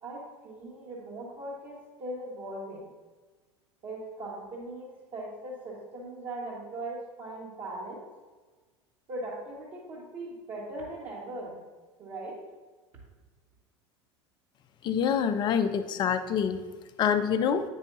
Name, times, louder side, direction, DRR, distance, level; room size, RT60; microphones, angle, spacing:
voice 1, 0.0-2.9 3.8-8.0 9.1-11.6 12.0-12.4, right 1 dB, 40° right, -7 dB, 1.5 m, -39 dB
voice 2, 14.8-16.6 17.0-17.6, left 7 dB, 30° left, 9 dB, 0.5 m, -26 dB
8.9 x 5.5 x 2.6 m, 1.3 s
figure-of-eight pair, 75°, 15 cm